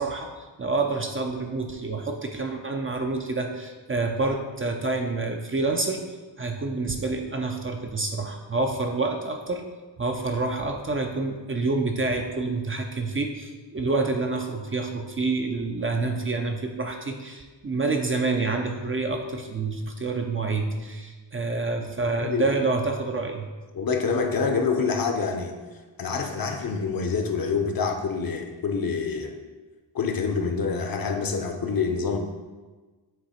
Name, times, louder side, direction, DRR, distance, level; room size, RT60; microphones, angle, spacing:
voice 1, 0.0-6.0 6.4-9.6 10.0-23.5, right 3 dB, 30° right, 3 dB, 0.5 m, -28 dB
voice 2, 23.7-25.6 26.0-29.3 29.9-32.2, left 5 dB, 50° left, 3 dB, 0.8 m, -26 dB
7.6 x 3.0 x 4.3 m, 1.3 s
wide cardioid pair, 105°, 46 cm